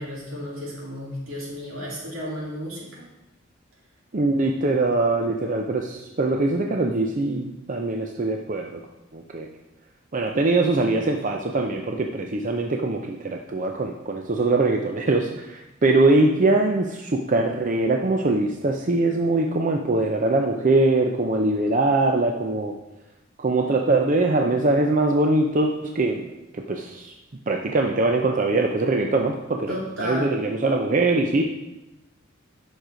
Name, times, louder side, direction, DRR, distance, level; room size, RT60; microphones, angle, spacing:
voice 1, 0.0-3.0 29.7-30.3, equal, 80° right, -5 dB, 3.6 m, -33 dB
voice 2, 4.1-8.8 9.1-9.5 10.1-22.8 23.4-26.3 26.5-27.1 27.5-31.4, right 2 dB, 40° right, 2 dB, 0.6 m, -22 dB
9.2 x 6.5 x 5.0 m, 0.97 s
head